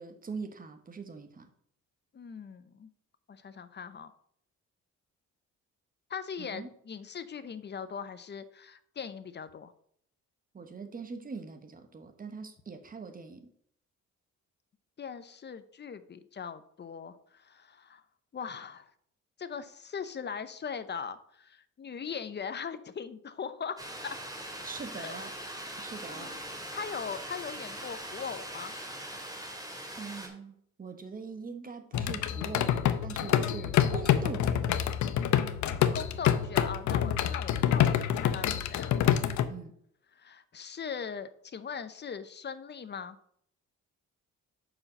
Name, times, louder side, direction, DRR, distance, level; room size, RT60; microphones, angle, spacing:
voice 1, 0.0-1.5 6.4-6.7 10.5-13.5 24.6-25.3 25.8-26.3 30.0-34.7 39.5-39.7, right 4 dB, 30° right, 7 dB, 1.2 m, -42 dB
voice 2, 2.1-2.9 3.3-4.1 6.1-9.7 15.0-18.0 18.3-18.9 19.4-24.2 25.0-25.2 25.6-28.7 35.9-39.0 40.1-43.2, left 6 dB, 35° left, 13 dB, 0.7 m, -40 dB
sound 1, 23.8-30.3, right 1 dB, 10° right, 2.6 m, -41 dB
sound 2, 31.9-39.5, left 10 dB, 75° left, 0.7 m, -27 dB
5.6 x 4.9 x 6.6 m, 0.66 s
cardioid pair, 90°, 30 cm